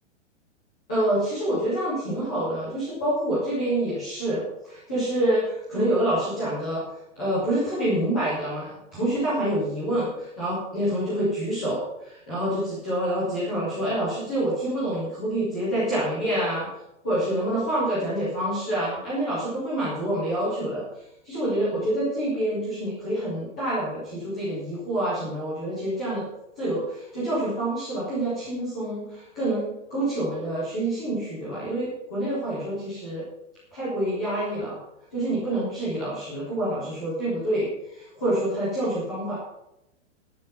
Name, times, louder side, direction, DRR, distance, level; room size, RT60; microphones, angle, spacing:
voice 1, 0.9-6.8 7.2-16.7 17.0-20.8 21.2-26.2 26.6-33.2 33.7-34.8 35.1-39.4, right 1 dB, ahead, -14 dB, 0.3 m, -27 dB
11.0 x 10.5 x 5.5 m, 0.86 s
hypercardioid pair, 165°, 38 cm